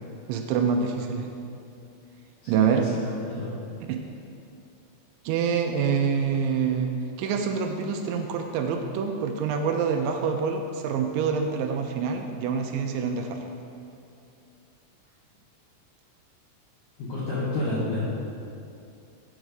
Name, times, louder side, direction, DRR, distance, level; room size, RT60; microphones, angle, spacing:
voice 1, 0.3-1.3 2.5-2.9 3.8-4.0 5.3-6.9 7.2-13.5, right 6 dB, 85° right, 4 dB, 2.8 m, -26 dB
voice 2, 2.4-2.9 3.2-3.5 17.0-18.0, left 2 dB, 70° left, -8 dB, 2.0 m, -29 dB
8.0 x 5.0 x 6.4 m, 2.6 s
omnidirectional pair, 5.4 m